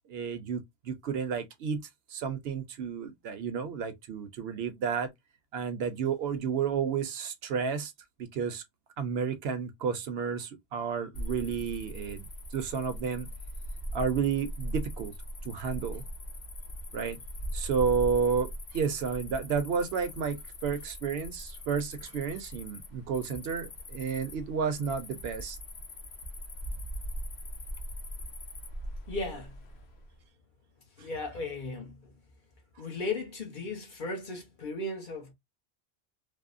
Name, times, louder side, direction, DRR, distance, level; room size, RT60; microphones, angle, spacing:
voice 1, 0.1-5.1 5.5-7.9 8.2-8.6 9.0-13.3 13.9-15.1 15.4-16.0 16.9-17.2 17.5-25.6 31.0-31.1, right 6 dB, 70° right, 0.8 m, -31 dB
Cricket, 11.1-30.1, equal, 75° left, 1.0 m, -40 dB
voice 2, 29.1-29.6 31.0-32.1 32.8-35.3, left 2 dB, 50° left, 0.9 m, -36 dB
3.4 x 2.0 x 2.4 m
omnidirectional pair, 1.1 m